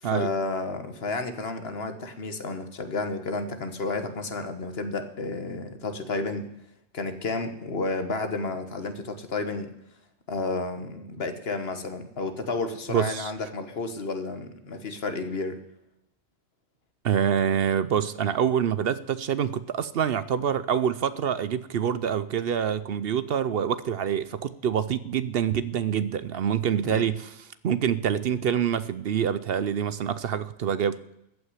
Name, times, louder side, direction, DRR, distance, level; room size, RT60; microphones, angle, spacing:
voice 1, 0.0-6.5 6.9-9.7 10.3-15.6 26.8-27.0, left 3 dB, 60° left, 9 dB, 1.5 m, -31 dB
voice 2, 12.9-13.3 17.0-27.3 27.6-31.0, right 8 dB, 65° right, 15 dB, 0.8 m, -26 dB
14.5 x 6.0 x 9.7 m, 0.83 s
omnidirectional pair, 1.2 m